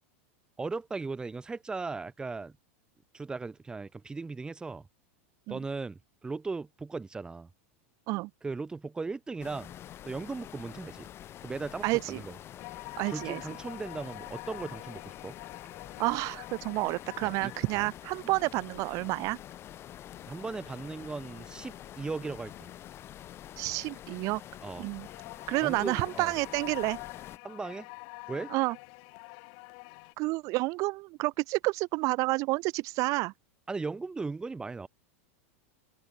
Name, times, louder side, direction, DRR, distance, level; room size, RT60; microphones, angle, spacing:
voice 1, 0.6-2.5 3.1-4.9 5.5-7.5 8.4-9.7 10.1-11.1 11.4-12.4 13.1-15.3 17.2-17.9 20.3-22.5 24.6-24.8 25.6-26.3 27.4-27.9 28.3-28.5 33.7-34.9, right 4 dB, 10° right, 0.8 m, -37 dB
sound 1, 9.4-27.4, left 11 dB, 35° left, 4.4 m, -47 dB
voice 2, 11.8-12.2 13.0-13.4 16.0-19.4 23.6-24.4 24.8-25.1 25.5-27.0 28.5-28.8 30.2-33.3, right 23 dB, 45° right, 0.6 m, -29 dB
sound 2, 12.6-30.1, left 40 dB or more, 55° left, 2.3 m, -48 dB
supercardioid pair, 125°, 7 cm